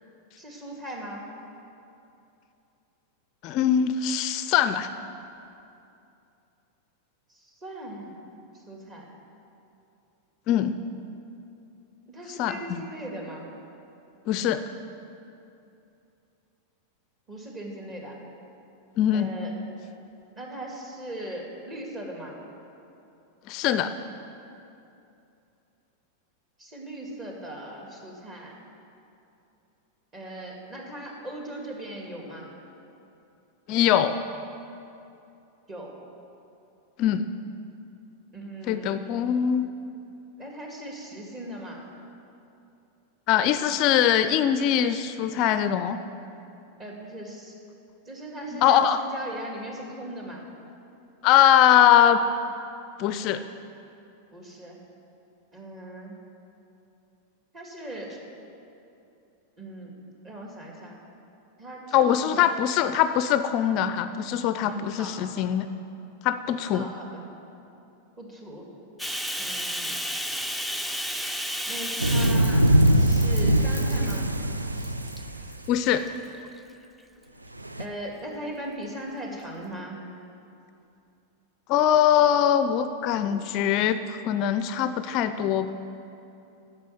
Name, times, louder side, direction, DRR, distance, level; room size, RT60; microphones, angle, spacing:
voice 1, 0.4-1.3 7.4-8.1 8.7-9.1 12.1-13.5 17.3-18.2 19.1-19.5 20.4-22.4 26.6-28.6 30.1-32.5 35.7-35.9 38.3-39.0 40.4-41.8 46.8-47.5 48.1-50.4 54.3-54.8 55.5-56.1 57.5-58.2 59.6-59.9 60.2-61.0 61.6-62.5 64.7-65.2 66.7-67.2 68.2-68.7 69.4-70.0 71.6-72.7 72.9-74.3 77.8-80.0, right 1 dB, 25° right, -1 dB, 2.5 m, -39 dB
voice 2, 3.4-4.9 10.5-10.8 12.4-12.8 14.3-14.6 19.0-19.3 23.5-23.9 33.7-34.1 37.0-37.3 38.7-39.7 43.3-46.0 48.5-49.0 51.2-52.2 53.0-53.4 61.9-65.7 66.2-66.9 75.7-76.0 81.7-85.7, left 10 dB, 45° left, 11 dB, 0.4 m, -22 dB
Bathtub (filling or washing), 69.0-74.4 74.8-75.2 75.8-76.6, equal, 5° right, 0.5 m, -33 dB
sound 1, 72.0-75.7 77.6-77.8, right 1 dB, 90° right, 0.5 m, -22 dB
10.5 x 7.0 x 8.0 m, 2.7 s
figure-of-eight pair, 90°, 0 cm